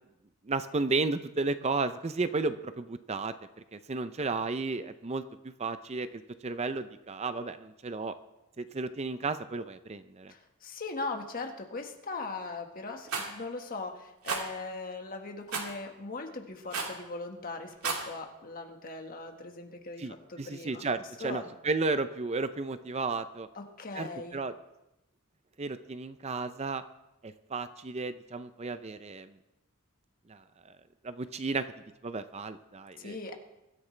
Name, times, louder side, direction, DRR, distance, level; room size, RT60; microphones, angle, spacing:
voice 1, 0.5-3.3 3.7-5.2 5.6-8.1 8.6-10.3 20.0-23.5 24.0-24.5 25.6-26.8 27.2-29.3 30.3-30.7 31.0-31.7 32.0-33.4, right 3 dB, 30° right, 11 dB, 0.5 m, -33 dB
voice 2, 10.3-20.9 21.2-21.5 23.5-24.4 33.0-33.4, left 3 dB, 40° left, 4 dB, 1.5 m, -40 dB
Rattle, 13.1-13.3 14.2-14.4 15.5-15.7 16.7-17.0 17.7-18.1, right 5 dB, 75° right, 2.7 m, -32 dB
23.0 x 13.5 x 3.3 m, 0.93 s
head